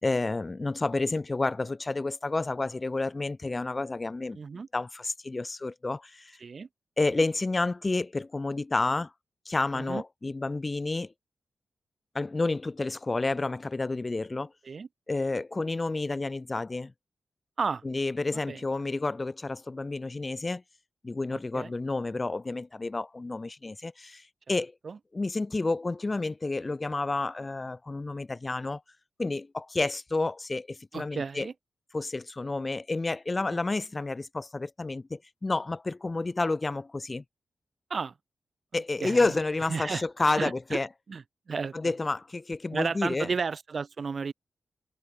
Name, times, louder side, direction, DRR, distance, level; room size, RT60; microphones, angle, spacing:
voice 1, 0.0-4.4 4.7-6.4 7.0-9.1 9.5-11.1 12.1-14.5 15.1-16.9 17.8-20.6 21.0-24.2 24.5-24.7 25.1-28.8 29.2-31.5 31.9-37.2 38.7-40.9 41.7-43.3, left 3 dB, 20° left, 1.0 m, -30 dB
voice 2, 4.3-4.7 6.4-6.7 9.7-10.0 14.6-14.9 17.6-17.8 18.3-18.6 21.3-21.7 24.8-25.0 30.9-31.5 33.5-33.6 37.9-38.1 38.7-39.2 39.7-40.0 40.4-40.8 41.1-41.9 42.7-44.3, right 5 dB, 45° right, 2.0 m, -33 dB
wide cardioid pair, 165°, 0 cm